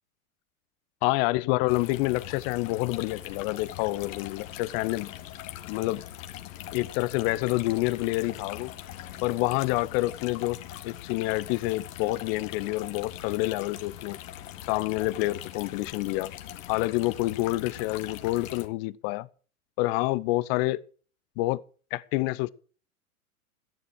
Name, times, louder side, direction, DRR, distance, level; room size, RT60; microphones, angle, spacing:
voice 1, 1.0-5.1 5.7-6.0 6.7-8.7 9.2-14.2 14.7-16.3 16.7-19.3 19.8-20.8 21.4-21.6 21.9-22.5, left 19 dB, 45° left, 0.8 m, -28 dB
sound 1, 1.7-18.7, left 12 dB, 60° left, 1.8 m, -42 dB
13.5 x 10.5 x 6.2 m
hypercardioid pair, 100°, 44 cm